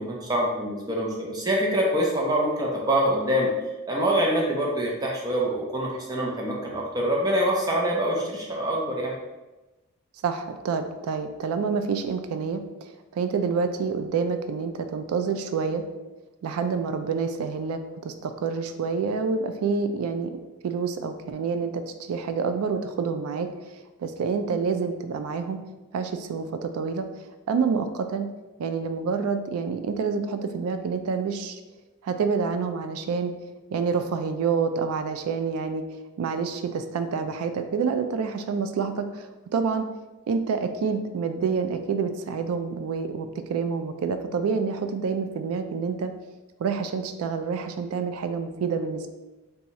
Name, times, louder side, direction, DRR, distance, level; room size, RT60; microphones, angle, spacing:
voice 1, 0.0-3.5 3.9-9.1, equal, 20° right, -2 dB, 0.5 m, -25 dB
voice 2, 10.2-15.8 16.4-20.3 20.6-25.6 25.9-27.1 27.5-28.3 28.6-31.6 32.0-33.3 33.7-39.9 40.3-46.1 46.6-49.1, right 5 dB, 85° right, 8 dB, 0.3 m, -28 dB
2.7 x 2.3 x 4.0 m, 1.1 s
head